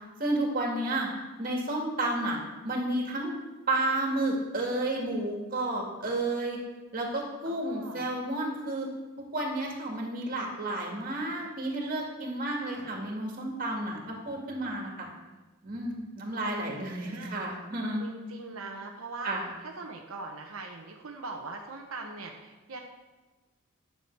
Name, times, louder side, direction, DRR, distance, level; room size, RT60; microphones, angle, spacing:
voice 1, 0.2-1.1 1.4-2.4 2.6-3.3 3.7-6.6 6.9-8.9 9.3-15.1 15.6-18.0 19.2-19.5, right 1 dB, 45° right, 0 dB, 2.1 m, -31 dB
voice 2, 7.5-8.1 12.6-12.9 17.0-17.4 18.0-19.3 19.6-22.8, right 3 dB, 90° right, 1 dB, 1.0 m, -41 dB
10.5 x 7.0 x 4.6 m, 1.2 s
head